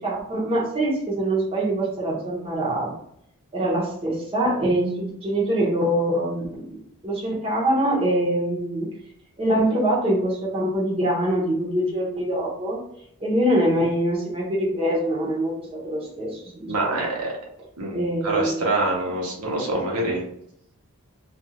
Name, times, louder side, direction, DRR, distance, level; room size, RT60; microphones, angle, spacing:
voice 1, 0.0-2.9 3.5-8.9 9.4-12.8 13.2-17.1 17.9-18.7, right 1 dB, 25° right, -5 dB, 0.8 m, -24 dB
voice 2, 16.7-17.3 17.8-20.2, right 2 dB, 80° right, -2 dB, 0.9 m, -25 dB
2.4 x 2.3 x 2.8 m, 0.71 s
head